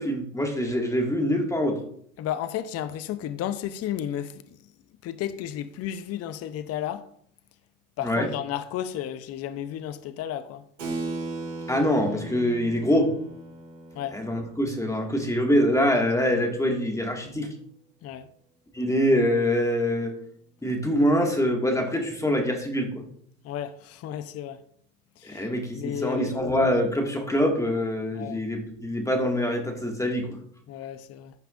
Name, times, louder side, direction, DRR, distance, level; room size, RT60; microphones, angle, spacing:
voice 1, 0.0-1.8 8.0-8.3 11.7-13.1 14.1-17.5 18.7-20.1 20.6-23.1 25.2-30.4, equal, 10° left, 1.9 m, -24 dB
voice 2, 2.2-4.4 5.0-7.0 8.0-10.6 13.9-14.2 18.0-18.3 23.4-24.6 25.2-25.5 25.7-26.5 28.1-28.4 30.7-31.3, left 10 dB, 40° left, 0.7 m, -33 dB
Keyboard (musical), 10.8-16.8, right 2 dB, 85° right, 2.4 m, -38 dB
14.5 x 5.6 x 2.5 m
hypercardioid pair, 80°, 37 cm